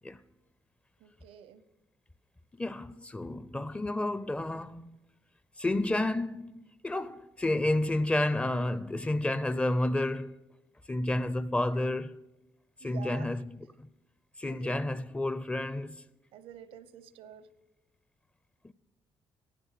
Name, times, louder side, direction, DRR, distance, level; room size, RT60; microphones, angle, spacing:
voice 1, 1.0-1.6 12.8-13.3 14.5-14.8 16.3-17.5, right 9 dB, 90° right, 0.9 m, -48 dB
voice 2, 2.6-5.0 5.6-10.4 10.9-12.2 12.8-13.9 14.4-16.0 18.6-18.7, left 1 dB, 10° left, 0.5 m, -31 dB
16.0 x 9.3 x 6.5 m
cardioid pair, 110°, 10 cm